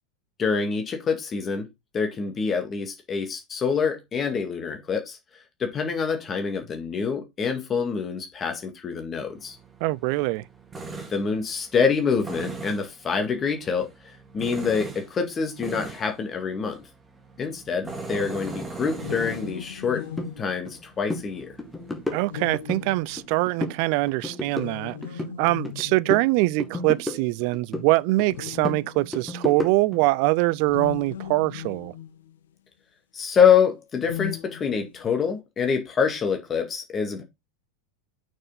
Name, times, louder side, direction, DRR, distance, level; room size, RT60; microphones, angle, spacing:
voice 1, 0.4-1.7 1.9-5.2 5.6-9.6 11.1-16.8 17.4-20.0 20.4-21.5 33.1-37.2, left 6 dB, 20° left, 1.9 m, -26 dB
Tools, 9.2-23.3, right 3 dB, 15° right, 2.2 m, -41 dB
voice 2, 9.8-10.4 22.1-25.0 25.4-31.9, right 20 dB, 45° right, 0.4 m, -23 dB
sound 1, 18.9-21.4 22.3-23.5 24.5-26.3 27.2-27.3 28.2-29.3 30.6-32.4 33.9-35.2, left 10 dB, 60° left, 1.0 m, -38 dB
sound 2, 20.2-20.3 20.7-20.8 21.1-21.3 21.6-22.8 23.2-23.8 24.1-25.8 26.1-27.9 28.2-30.0, left 2 dB, 5° left, 2.1 m, -32 dB
6.4 x 6.1 x 4.0 m
figure-of-eight pair, 90°, 0 cm